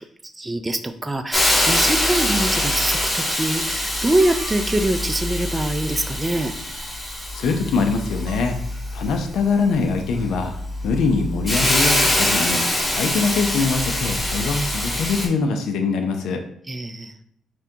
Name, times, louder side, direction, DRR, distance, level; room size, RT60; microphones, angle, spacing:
voice 1, 0.0-6.5 16.7-17.2, right 1 dB, 15° right, 7 dB, 0.3 m, -24 dB
Hiss, 1.3-15.3, left 1 dB, 15° left, 1.3 m, -24 dB
sound 1, 3.8-5.0 6.4-6.6 8.3-8.7, right 5 dB, 75° right, 0.8 m, -43 dB
voice 2, 7.3-8.6 8.9-10.5 10.8-12.6 13.0-16.4, left 4 dB, 75° left, 5 dB, 0.5 m, -23 dB
5.9 x 2.3 x 2.8 m, 0.72 s
cardioid pair, 90°, 0 cm